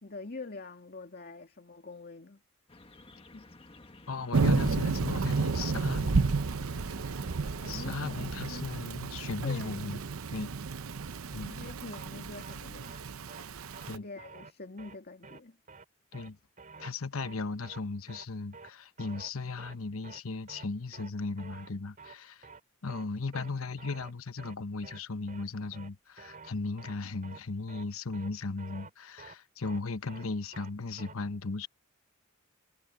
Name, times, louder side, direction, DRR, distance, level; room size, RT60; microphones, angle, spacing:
voice 1, 0.0-2.4 3.3-3.4 7.6-8.7 9.4-9.8 11.4-13.0 13.3-13.4 13.9-15.6 23.3-23.5, left 3 dB, 50° left, 2.3 m, -45 dB
sound 1, 2.7-8.2, left 2 dB, 30° left, 1.6 m, -53 dB
voice 2, 4.1-6.3 7.7-10.0 10.3-10.5 11.3-11.5 13.9-14.0 16.1-16.4 16.8-22.5 22.8-31.7, left 3 dB, 90° left, 1.0 m, -36 dB
Thunder / Rain, 4.3-14.0, right 4 dB, 85° right, 0.7 m, -32 dB
sound 2, 11.9-12.1 12.4-12.5 12.8-13.0 13.3-13.4 13.7-13.9 14.2-14.5 14.8-14.9 15.2-15.4 15.7-15.8 16.1-16.3 16.6-16.9 17.2-17.3 17.6-17.8 18.1-18.3 18.5-18.7 19.0-19.3 19.6-19.8 20.0-20.2 20.5-20.7 20.9-21.1 21.4-21.7 22.0-22.2 22.4-22.6 22.9-23.0 23.3-23.5 23.8-24.1 24.4-24.5 24.8-25.0 25.3-25.4 25.7-25.9 26.2-26.5 26.8-27.0 27.2-27.4 27.7-27.8 28.1-28.3 28.6-28.9 29.2-29.3 29.6-29.8 30.1-30.3 30.5-30.7 31.0-31.1, right 4 dB, 40° right, 3.1 m, -49 dB
head